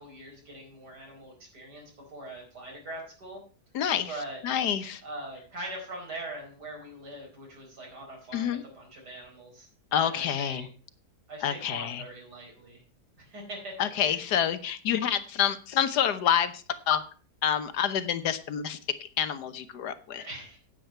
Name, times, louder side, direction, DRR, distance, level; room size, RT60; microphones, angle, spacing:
voice 1, 0.0-3.4 4.1-4.4 5.0-9.7 10.0-10.7 11.3-12.8 13.2-14.2 20.2-20.6, right 1 dB, 70° right, 1 dB, 5.1 m, -42 dB
voice 2, 3.7-4.2 4.4-5.0 8.3-8.6 9.9-10.7 11.4-12.0 13.8-17.0 17.4-20.2, left 9 dB, 75° left, 12 dB, 1.4 m, -28 dB
9.2 x 9.0 x 5.5 m, 0.38 s
omnidirectional pair, 1.8 m